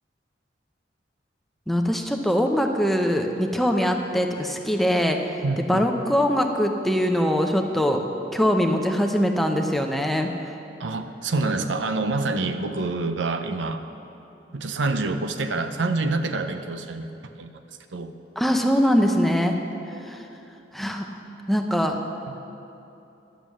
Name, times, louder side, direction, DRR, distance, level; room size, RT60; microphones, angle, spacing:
voice 1, 1.7-5.2 5.7-8.0 8.3-10.3 18.4-19.6 20.0-20.2 20.7-21.1 21.5-22.0, equal, ahead, 3 dB, 0.6 m, -22 dB
voice 2, 5.4-5.8 10.8-13.8 14.5-17.5 17.9-18.1 22.3-22.4, right 3 dB, 85° right, 8 dB, 0.7 m, -27 dB
11.0 x 7.5 x 7.2 m, 2.9 s
head